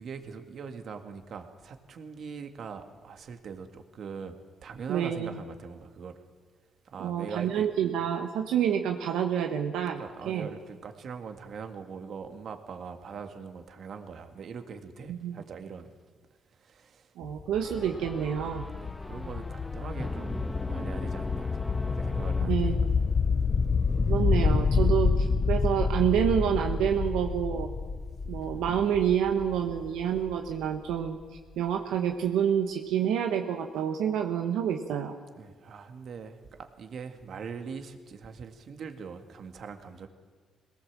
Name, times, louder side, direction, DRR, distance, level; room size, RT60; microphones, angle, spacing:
voice 1, 0.0-6.2 6.9-7.7 10.0-15.9 16.6-17.1 18.8-22.8 35.4-40.1, right 6 dB, 60° right, 7 dB, 1.9 m, -42 dB
voice 2, 4.9-5.4 7.0-10.5 15.1-15.4 17.2-18.7 22.4-23.0 24.1-27.7 28.3-31.2 31.6-35.1, right 9 dB, 85° right, 4 dB, 1.2 m, -28 dB
sound 1, 17.2-31.0, left 5 dB, 45° left, 0.8 m, -28 dB
sound 2, 17.6-23.2, left 1 dB, 15° left, 0.7 m, -39 dB
22.0 x 18.0 x 7.5 m, 1.5 s
cardioid pair, 90°, 0 cm